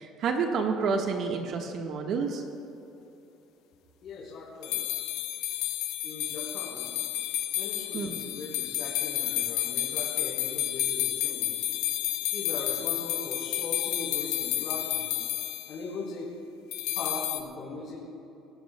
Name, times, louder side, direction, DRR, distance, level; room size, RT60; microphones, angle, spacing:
voice 1, 0.0-2.4 7.9-8.2, right 5 dB, 55° right, 2 dB, 1.4 m, -29 dB
voice 2, 4.0-4.8 6.0-7.0 7.5-11.7 12.3-15.2 15.7-16.3 16.9-18.0, left 3 dB, 50° left, -7 dB, 3.8 m, -39 dB
sound 1, 4.6-15.7 16.7-17.4, left 13 dB, 75° left, 0.9 m, -31 dB
27.0 x 15.5 x 2.3 m, 2.9 s
cardioid pair, 140°, 0 cm